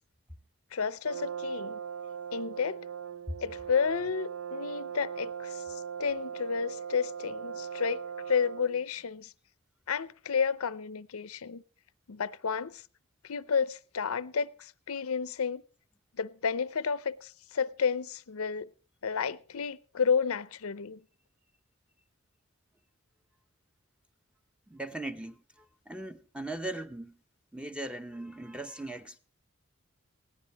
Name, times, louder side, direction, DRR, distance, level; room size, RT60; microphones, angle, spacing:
voice 1, 0.7-1.8 2.3-2.8 3.4-8.0 8.3-9.3 9.9-11.6 12.1-12.8 13.2-15.6 16.2-18.7 19.0-21.0, left 6 dB, 80° left, 0.6 m, -31 dB
Brass instrument, 1.0-8.8, right 7 dB, 70° right, 0.6 m, -39 dB
voice 2, 24.7-27.2 27.5-29.2, right 1 dB, 5° right, 0.7 m, -39 dB
19.5 x 15.5 x 3.0 m
head